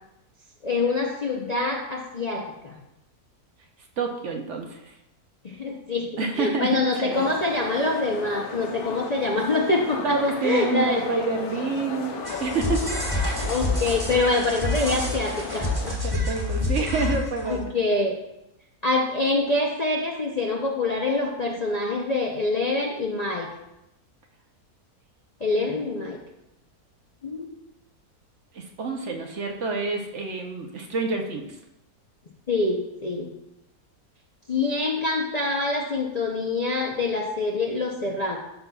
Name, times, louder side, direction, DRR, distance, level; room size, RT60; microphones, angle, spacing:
voice 1, 0.6-2.8 5.4-10.2 10.4-11.0 13.5-16.0 16.8-16.9 17.5-18.1 18.8-23.5 25.4-26.2 27.2-27.5 32.5-33.3 34.5-38.4, left 3 dB, 45° left, -2 dB, 0.5 m, -25 dB
voice 2, 4.0-4.8 6.2-7.4 10.0-12.1 12.4-13.0 16.0-17.8 25.5-25.9 28.5-31.5, right 3 dB, 60° right, 3 dB, 0.9 m, -28 dB
sound 1, 7.1-16.0, left 4 dB, 85° left, 1.3 m, -35 dB
sound 2, 12.2-17.6, left 2 dB, 20° right, 1.2 m, -28 dB
12.0 x 5.6 x 2.3 m, 0.88 s
omnidirectional pair, 1.6 m